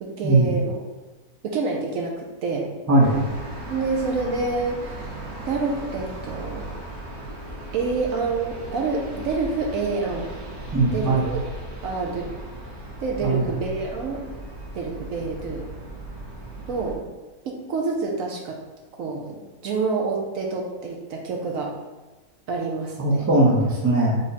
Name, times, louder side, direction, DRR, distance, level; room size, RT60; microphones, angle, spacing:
voice 1, 0.0-0.8 1.4-2.7 3.7-5.1 5.4-6.8 7.7-10.3 10.9-11.4 11.8-12.3 13.0-14.3 14.7-15.7 16.7-17.1 17.4-18.6 19.0-21.7 22.5-23.3, right 4 dB, 65° right, 0 dB, 0.9 m, -27 dB
voice 2, 2.9-3.2 10.7-11.2 13.2-13.4 23.0-24.2, right 2 dB, 20° right, -2 dB, 0.5 m, -19 dB
sound 1, 3.0-17.0, right 1 dB, 50° right, 1.2 m, -37 dB
3.7 x 3.4 x 4.1 m, 1.2 s
omnidirectional pair, 1.6 m